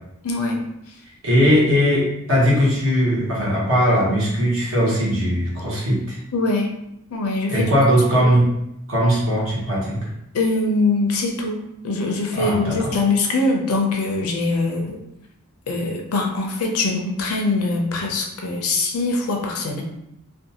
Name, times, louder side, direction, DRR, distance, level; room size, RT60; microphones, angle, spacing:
voice 1, 0.2-0.6 6.3-6.7 7.1-7.7 8.2-8.3 10.3-15.0 15.7-19.8, left 3 dB, 80° left, 2 dB, 0.5 m, -22 dB
voice 2, 1.2-6.2 7.5-8.5 8.9-10.1 12.3-12.9, equal, 65° right, -5 dB, 1.0 m, -19 dB
2.5 x 2.2 x 2.7 m, 0.81 s
head